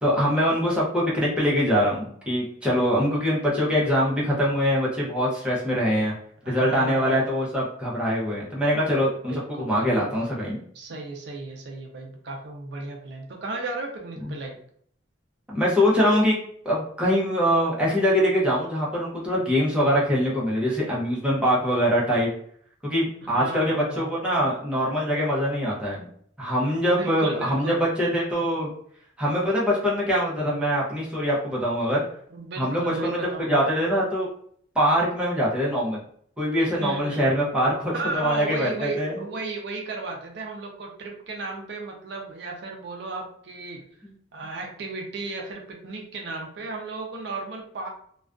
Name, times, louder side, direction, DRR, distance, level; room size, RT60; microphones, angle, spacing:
voice 1, 0.0-6.1 6.5-10.6 14.2-14.3 15.5-16.4 16.6-22.3 22.8-26.1 26.4-28.7 29.2-32.0 32.6-33.2 33.5-34.3 34.8-36.0 36.4-39.2, equal, 5° right, -6 dB, 0.6 m, -23 dB
voice 2, 6.4-7.5 9.3-10.4 10.7-14.5 23.2-24.1 26.9-27.8 32.3-33.7 36.8-37.3 37.9-43.8 44.3-47.9, right 3 dB, 60° right, 2 dB, 0.4 m, -35 dB
2.3 x 2.2 x 2.4 m, 0.63 s
head